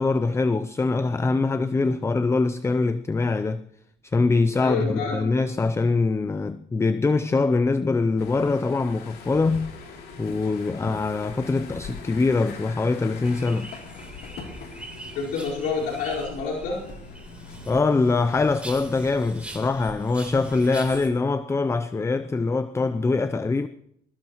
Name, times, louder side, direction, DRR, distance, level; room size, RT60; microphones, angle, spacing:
voice 1, 0.0-3.6 4.0-9.7 10.2-13.7 17.7-23.7, left 3 dB, 15° left, 0.5 m, -23 dB
voice 2, 4.6-5.2 15.1-16.9, left 4 dB, 90° left, 4.7 m, -28 dB
sound 1, 8.2-18.4, left 5 dB, 70° left, 3.1 m, -42 dB
sound 2, 13.2-21.1, right 1 dB, 5° right, 3.4 m, -42 dB
21.5 x 18.5 x 3.0 m
cardioid pair, 110°, 17 cm